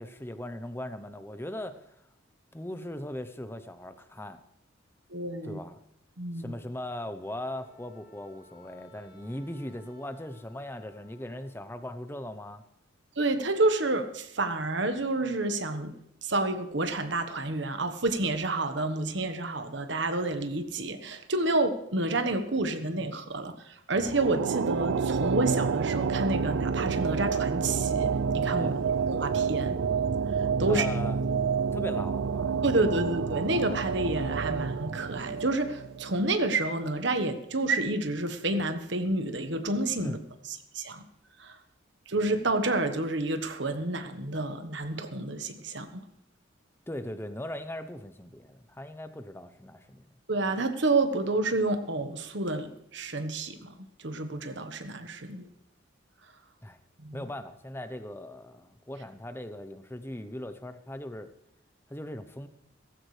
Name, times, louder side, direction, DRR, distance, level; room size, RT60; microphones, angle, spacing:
voice 1, 0.0-1.9 2.5-4.4 5.4-5.8 6.4-12.6 28.6-28.8 30.7-31.2 31.7-32.7 40.0-40.2 46.9-50.1 56.6-56.8 57.1-61.3 61.9-62.5, left 1 dB, 10° left, 10 dB, 0.8 m, -39 dB
voice 2, 5.1-5.6 6.2-6.5 13.2-15.9 16.2-28.8 29.1-29.8 30.4-30.9 32.6-40.2 40.5-41.0 41.4-41.6 42.1-46.1 50.3-55.4 57.0-57.3, right 2 dB, 65° right, 8 dB, 1.3 m, -29 dB
Wind instrument woodwind instrument, 7.1-11.6, left 1 dB, 55° left, 4.3 m, -59 dB
sound 1, 24.0-36.5, right 6 dB, 80° right, 0.4 m, -29 dB
17.5 x 15.5 x 3.3 m, 0.78 s
head